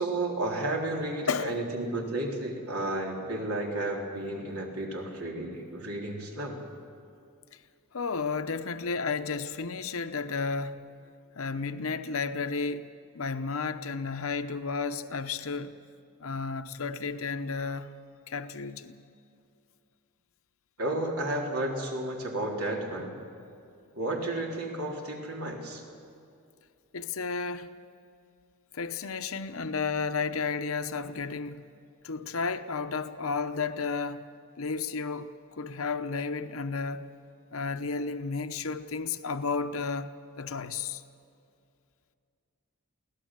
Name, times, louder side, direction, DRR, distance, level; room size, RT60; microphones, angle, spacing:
voice 1, 0.0-6.6 20.8-23.1 24.0-25.8, right 1 dB, 80° right, 3.6 m, -32 dB
voice 2, 7.9-10.9 11.4-12.8 13.1-15.7 16.2-17.9 18.3-18.9 26.9-27.8 28.7-31.6 32.0-34.2 34.6-35.3 35.6-37.1 37.5-41.0, left 4 dB, 65° left, 0.9 m, -32 dB
24.0 x 17.0 x 7.5 m
head